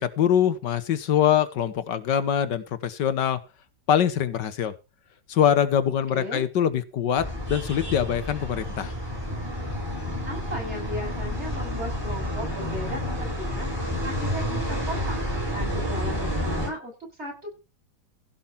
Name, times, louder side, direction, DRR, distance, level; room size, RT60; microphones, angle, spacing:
voice 1, 0.0-3.4 3.9-4.7 5.3-8.9, left 9 dB, 90° left, 12 dB, 1.8 m, -23 dB
voice 2, 6.1-6.5 10.2-15.2 15.5-17.5, equal, 40° right, 0 dB, 8.4 m, -36 dB
sound 1, 7.2-16.7, left 1 dB, 15° right, 7.9 m, -30 dB
16.0 x 6.0 x 5.7 m, 0.29 s
omnidirectional pair, 1.8 m